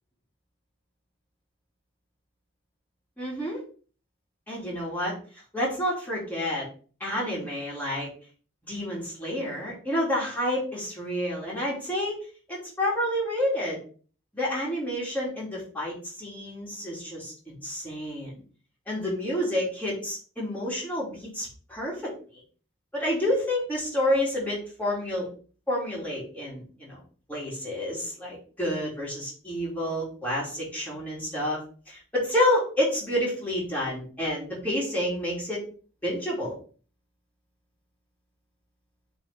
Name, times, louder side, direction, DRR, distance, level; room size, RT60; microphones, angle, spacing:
voice 1, 3.2-3.6 4.5-5.2 5.5-6.7 7.0-8.1 8.7-13.8 14.3-18.3 18.9-22.1 22.9-25.3 25.7-27.0 27.3-31.6 31.9-35.6 36.0-36.5, left 1 dB, 10° left, -6 dB, 2.8 m, -29 dB
7.3 x 3.7 x 3.8 m, 0.41 s
head